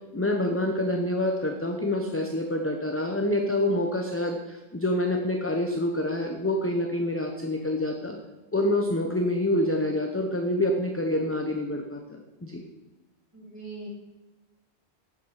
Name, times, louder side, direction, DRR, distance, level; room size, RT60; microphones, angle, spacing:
voice 1, 0.1-8.2 8.5-12.6, left 1 dB, 15° left, 3 dB, 0.6 m, -27 dB
voice 2, 13.3-13.9, right 3 dB, 15° right, -5 dB, 3.2 m, -41 dB
9.6 x 7.5 x 4.8 m, 1.1 s
omnidirectional pair, 1.1 m